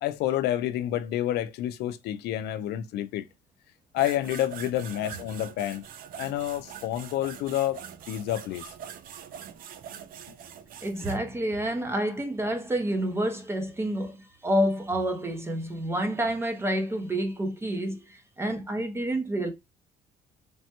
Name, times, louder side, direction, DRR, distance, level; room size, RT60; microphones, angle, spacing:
voice 1, 0.0-3.3 3.9-5.8 6.2-8.7, left 12 dB, 75° left, 0.4 m, -29 dB
sound 1, 3.9-11.2, right 9 dB, 55° right, 0.4 m, -43 dB
voice 2, 10.8-19.5, right 1 dB, 15° right, 0.7 m, -28 dB
3.3 x 2.1 x 2.8 m
cardioid pair, 110°, 17 cm